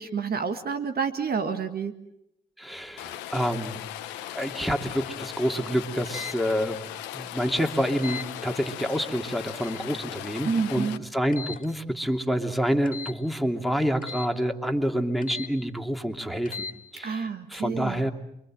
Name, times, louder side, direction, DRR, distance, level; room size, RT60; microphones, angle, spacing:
voice 1, 0.0-1.9 10.4-11.0 17.0-18.0, right 5 dB, 60° right, 8 dB, 1.9 m, -29 dB
voice 2, 2.6-3.8 4.3-6.8 7.1-18.1, equal, ahead, 5 dB, 2.9 m, -28 dB
Rain, 3.0-11.0, left 13 dB, 90° left, 1.1 m, -38 dB
sound 1, 6.1-6.4 8.0-8.3 9.5-9.9 11.3-11.7 12.9-13.2 14.0-14.3 15.2-15.5 16.4-16.7, left 5 dB, 50° left, 2.3 m, -37 dB
28.5 x 23.0 x 7.7 m, 0.81 s
hypercardioid pair, 40°, 18 cm